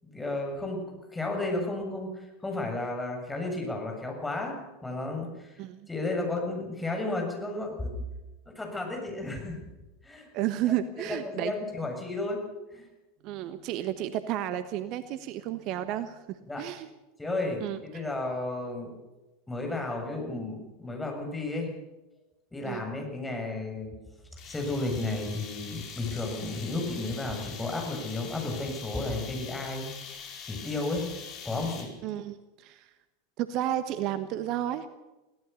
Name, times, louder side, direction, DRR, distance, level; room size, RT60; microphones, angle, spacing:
voice 1, 0.0-0.8 1.1-7.9 8.5-9.6 10.0-10.3 11.0-12.4 12.7-12.9 16.5-16.6 17.2-18.9 19.5-21.7 22.5-23.9 24.4-29.9 30.4-31.1 31.4-31.9, left 2 dB, 10° left, 2 dB, 7.3 m, -33 dB
voice 2, 10.3-11.5 13.2-16.9 17.6-18.0 22.6-22.8 32.0-32.9 33.4-34.9, right 12 dB, 50° right, 12 dB, 1.2 m, -32 dB
sound 1, 24.4-32.1, left 6 dB, 45° left, 4.8 m, -43 dB
23.5 x 17.5 x 7.0 m, 1.1 s
figure-of-eight pair, 85°, 0 cm